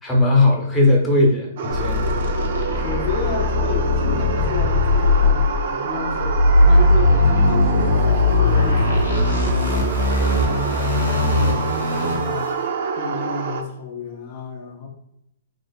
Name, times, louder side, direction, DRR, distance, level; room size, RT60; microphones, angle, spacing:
voice 1, 0.0-2.5, left 2 dB, 10° left, -2 dB, 0.9 m, -18 dB
sound 1, 1.6-13.6, right 5 dB, 60° right, 0.5 m, -27 dB
sound 2, 1.7-12.5, left 2 dB, 75° left, 1.0 m, -19 dB
voice 2, 2.8-6.4 6.7-8.1 8.3-9.8 10.2-12.6 13.0-14.9, left 4 dB, 45° left, 0 dB, 0.6 m, -31 dB
3.1 x 2.1 x 3.9 m, 0.81 s
hypercardioid pair, 135°, 0 cm